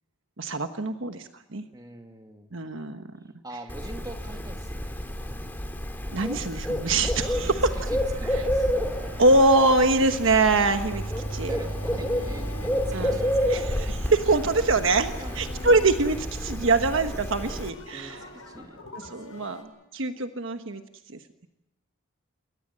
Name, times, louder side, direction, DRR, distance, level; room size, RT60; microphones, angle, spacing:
voice 1, 0.4-1.6 2.5-3.0 6.1-7.5 9.2-11.0 11.3-11.5 12.9-13.2 13.5-18.2 19.1-19.6 19.9-20.8 21.1-21.2, right 2 dB, 60° right, 7 dB, 1.2 m, -23 dB
voice 2, 1.7-2.5 3.4-4.9 7.3-8.7 10.3-10.4 11.5-13.6 15.2-15.4 17.5-17.6 17.9-18.9 19.3-19.4, right 1 dB, 20° right, 4 dB, 2.4 m, -43 dB
Bird, 3.7-17.7, equal, 10° left, 2.3 m, -30 dB
sound 1, 7.4-17.7, right 1 dB, 90° right, 1.7 m, -42 dB
sound 2, 8.2-16.8 17.3-19.6, left 3 dB, 75° left, 7.1 m, -47 dB
29.0 x 21.5 x 7.5 m, 0.92 s
head